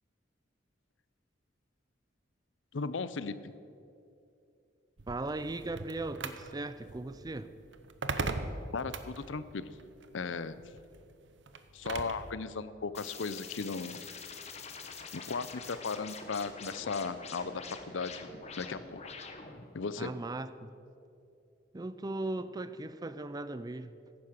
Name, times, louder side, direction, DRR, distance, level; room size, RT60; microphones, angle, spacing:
voice 1, 2.7-3.4 8.7-9.7 10.1-10.6 11.7-14.0 15.1-18.3 18.6-19.0 19.7-20.1, left 4 dB, 80° left, 15 dB, 0.6 m, -36 dB
sound 1, 5.0-12.3, right 3 dB, 70° right, 0.8 m, -40 dB
voice 2, 5.1-7.5 20.0-20.7 21.7-24.0, right 2 dB, 20° right, 13 dB, 0.5 m, -38 dB
sound 2, 12.9-19.7, left 5 dB, 35° left, 1.2 m, -45 dB
15.5 x 9.6 x 6.6 m, 2.6 s
head